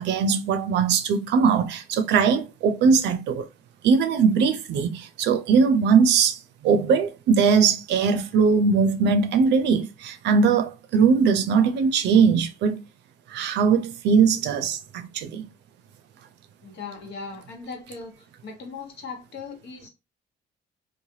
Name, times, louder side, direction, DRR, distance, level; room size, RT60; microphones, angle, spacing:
voice 1, 0.0-3.5 3.8-12.8 13.3-15.5, right 5 dB, 80° right, 0.5 m, -20 dB
voice 2, 16.6-18.1 18.4-19.9, left 4 dB, 75° left, 1.2 m, -38 dB
3.1 x 2.2 x 2.7 m
cardioid pair, 90°, 18 cm